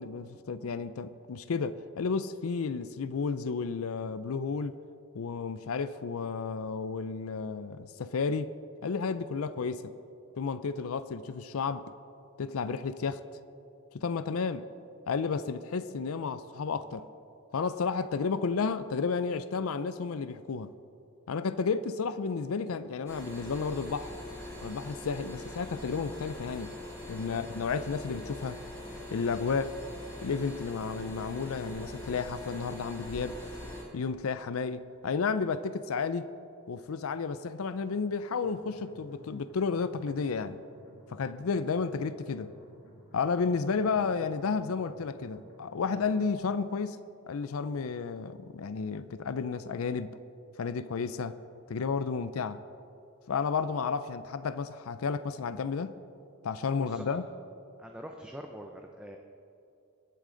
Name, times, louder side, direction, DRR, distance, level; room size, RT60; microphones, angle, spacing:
voice 1, 0.0-4.8 5.1-8.5 8.8-9.9 10.4-11.8 12.4-13.2 13.9-14.7 15.1-17.0 17.5-20.7 21.3-24.1 24.6-26.7 27.1-28.6 29.1-29.8 30.2-33.4 33.9-36.3 36.7-40.6 41.1-42.5 43.1-47.0 47.3-50.2 50.6-51.4 51.7-52.6 53.3-56.0 56.4-57.2, left 5 dB, 75° left, 0.4 m, -32 dB
sound 1, 23.1-33.8, left 1 dB, 15° left, 2.8 m, -43 dB
sound 2, 38.4-46.4, equal, 60° left, 2.3 m, -56 dB
voice 2, 56.8-57.2 57.8-59.2, equal, 5° right, 0.6 m, -44 dB
23.0 x 8.4 x 3.9 m
head